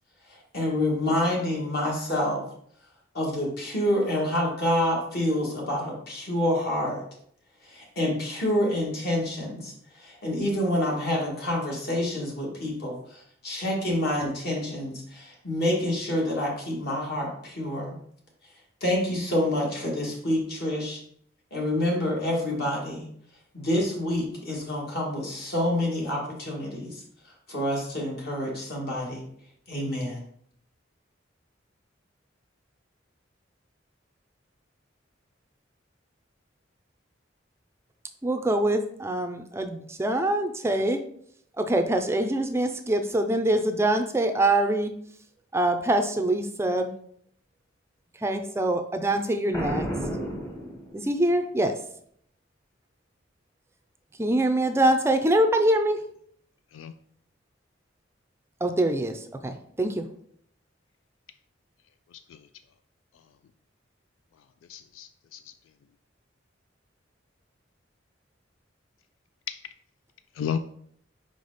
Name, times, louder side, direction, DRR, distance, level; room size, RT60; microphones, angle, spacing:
voice 1, 0.3-2.4 3.1-7.0 7.6-18.0 18.8-21.0 21.5-23.1 23.5-27.0 27.5-29.2 29.7-30.2, left 1 dB, 55° left, -2 dB, 2.0 m, -27 dB
voice 2, 38.2-41.0 41.6-44.9 45.5-46.9 48.1-49.9 50.9-51.8 54.2-56.0 58.6-60.1, right 1 dB, 15° right, 7 dB, 0.4 m, -24 dB
Boom, 49.5-51.4, equal, 20° left, 1.1 m, -32 dB
voice 3, 62.1-62.5 64.7-65.5 70.3-70.6, left 8 dB, 90° left, 11 dB, 0.3 m, -34 dB
5.3 x 5.0 x 4.0 m, 0.66 s
head